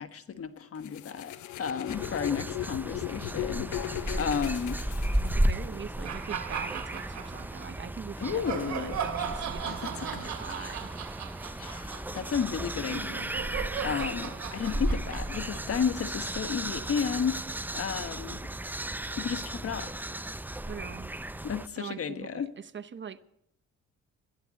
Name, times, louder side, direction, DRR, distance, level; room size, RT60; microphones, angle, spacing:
voice 1, 0.0-4.8 8.2-9.0 9.6-10.9 11.6-17.4 17.7-18.4 19.2-19.9 21.4-22.5, left 7 dB, 50° left, 1.4 m, -33 dB
sound 1, 0.8-5.8, left 15 dB, 75° left, 0.8 m, -37 dB
sound 2, 1.9-21.7, right 1 dB, 5° right, 0.5 m, -34 dB
voice 2, 5.2-10.9 20.7-21.1 21.8-23.2, right 7 dB, 40° right, 1.0 m, -42 dB
sound 3, 6.0-7.7 8.2-16.5, right 8 dB, 65° right, 2.7 m, -38 dB
21.5 x 14.0 x 4.2 m
cardioid pair, 90°, 30 cm